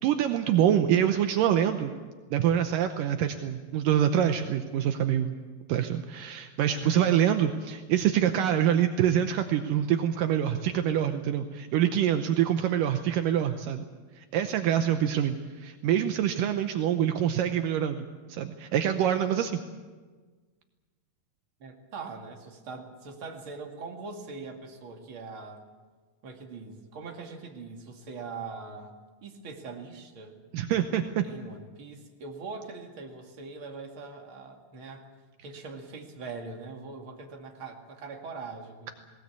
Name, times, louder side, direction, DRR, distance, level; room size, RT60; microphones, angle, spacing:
voice 1, 0.0-1.9 2.3-5.4 5.7-13.8 14.2-19.6 30.5-31.2, right 10 dB, 75° right, 7 dB, 2.3 m, -25 dB
voice 2, 6.7-7.1 21.6-25.6 26.2-28.9 29.2-30.4 31.2-35.0 35.4-38.9, right 4 dB, 40° right, 2 dB, 2.7 m, -42 dB
20.0 x 19.0 x 8.3 m, 1.4 s
omnidirectional pair, 4.1 m